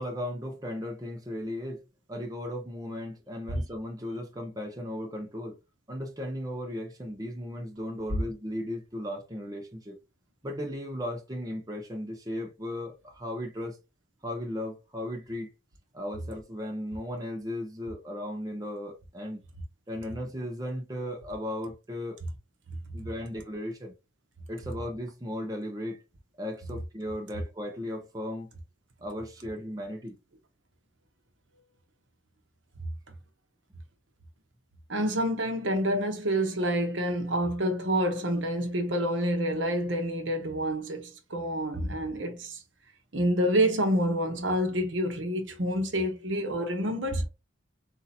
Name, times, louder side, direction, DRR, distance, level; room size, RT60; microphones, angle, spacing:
voice 1, 0.0-1.8 2.1-5.6 5.9-10.0 10.4-13.8 14.2-15.5 15.9-19.4 19.9-22.2 22.9-23.9 24.5-26.0 26.4-28.5 29.0-30.2, left 1 dB, 20° right, 0.9 m, -36 dB
voice 2, 34.9-42.6 43.1-47.2, equal, 70° right, 1.0 m, -28 dB
4.0 x 2.8 x 4.2 m
head